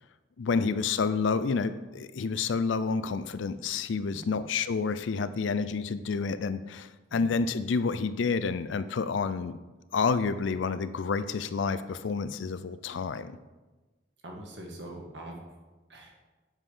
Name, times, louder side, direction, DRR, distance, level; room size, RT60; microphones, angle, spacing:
voice 1, 0.4-9.6 9.9-13.4, left 5 dB, 75° left, 13 dB, 0.4 m, -29 dB
voice 2, 14.2-15.4 15.9-16.1, right 1 dB, 70° right, 0 dB, 1.6 m, -43 dB
7.3 x 5.7 x 5.0 m, 1.2 s
head